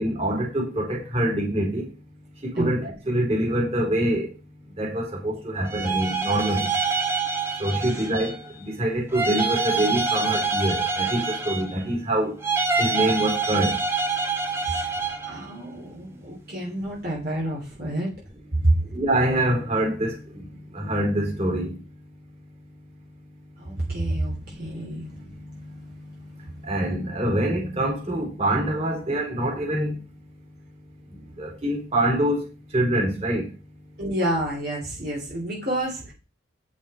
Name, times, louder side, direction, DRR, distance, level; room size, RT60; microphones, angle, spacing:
voice 1, 0.0-1.9 2.4-4.3 4.8-6.7 7.6-12.3 12.8-13.8 18.7-20.5 20.7-21.7 24.5-25.7 26.6-30.0 31.4-32.4 32.7-33.5, right 1 dB, 35° right, 3.9 m, -25 dB
sound 1, 5.6-8.5 9.1-11.9 12.4-15.4, right 4 dB, 15° right, 1.3 m, -26 dB
voice 2, 15.3-18.1 18.6-18.7 23.6-25.0 34.0-36.1, right 1 dB, 55° right, 3.1 m, -28 dB
9.0 x 7.1 x 4.3 m
head